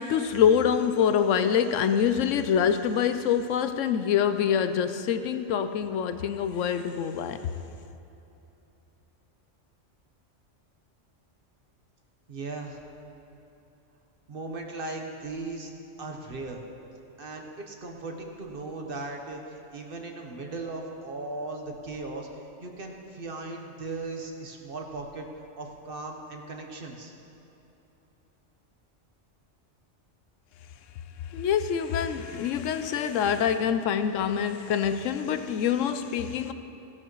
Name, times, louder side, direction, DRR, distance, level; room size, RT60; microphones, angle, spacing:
voice 1, 0.0-7.5 31.3-36.5, left 8 dB, 85° left, 1.0 m, -25 dB
voice 2, 12.3-12.8 14.3-15.7 16.0-16.6 17.2-27.1, right 3 dB, 50° right, 1.2 m, -38 dB
16.5 x 12.0 x 3.1 m
omnidirectional pair, 1.3 m